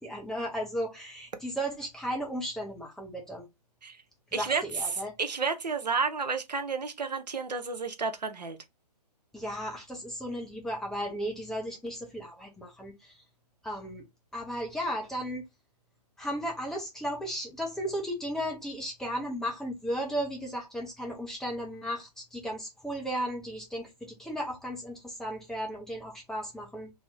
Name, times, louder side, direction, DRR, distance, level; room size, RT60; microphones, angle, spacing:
voice 1, 0.0-3.4 4.3-5.1 9.3-13.2 13.6-14.0 14.3-15.4 16.2-26.9, equal, ahead, 0.5 m, -35 dB
voice 2, 4.3-8.6, right 5 dB, 80° right, 0.7 m, -31 dB
2.7 x 2.6 x 3.3 m
figure-of-eight pair, 135°, 21 cm